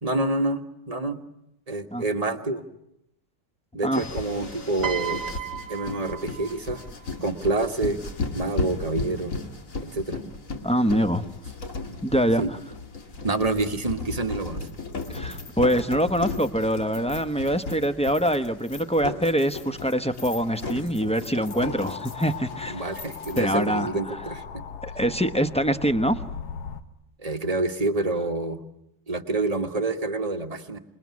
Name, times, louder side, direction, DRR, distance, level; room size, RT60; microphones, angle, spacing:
voice 1, 0.0-1.2 1.7-2.6 3.7-5.2 5.7-6.8 7.2-8.0 8.3-9.4 9.8-10.2 12.4-12.5 13.2-14.7 22.7-24.6 27.2-28.6 29.1-30.8, right 2 dB, 20° right, 4 dB, 1.5 m, -27 dB
sound 1, 3.9-23.7, left 3 dB, 50° left, 2.3 m, -36 dB
Piano, 4.8-7.2 8.2-8.5, right 9 dB, 50° right, 1.7 m, -35 dB
voice 2, 10.6-11.2 12.0-12.6 15.1-22.8 23.4-23.9 24.8-26.2, equal, 5° left, 9 dB, 0.7 m, -24 dB
sound 2, 21.5-26.8, left 6 dB, 70° left, 1.9 m, -38 dB
27.0 x 22.0 x 9.6 m, 0.80 s
omnidirectional pair, 1.8 m